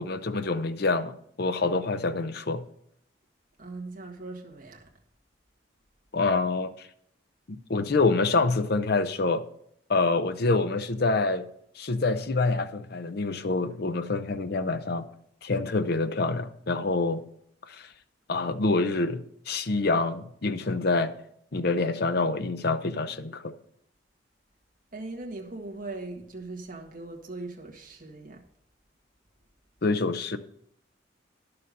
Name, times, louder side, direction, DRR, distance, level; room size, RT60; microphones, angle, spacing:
voice 1, 0.0-2.6 6.1-6.7 7.5-9.4 9.9-11.5 11.8-15.1 15.4-17.2 17.7-17.8 18.3-21.1 21.5-23.5 29.8-30.4, left 3 dB, 55° left, 0.6 m, -26 dB
voice 2, 3.6-4.8 24.9-28.4, right 2 dB, 45° right, 1.7 m, -39 dB
11.0 x 6.8 x 5.3 m
head